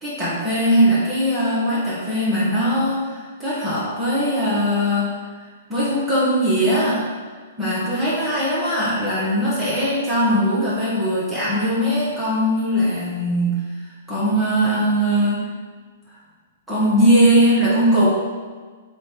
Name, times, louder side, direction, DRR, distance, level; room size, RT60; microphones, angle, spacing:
voice 1, 0.0-5.1 5.7-7.0 7.6-13.6 14.1-15.4 16.7-18.1, equal, 5° right, -11 dB, 2.0 m, -20 dB
7.5 x 3.2 x 4.8 m, 1.5 s
hypercardioid pair, 140°, 0 cm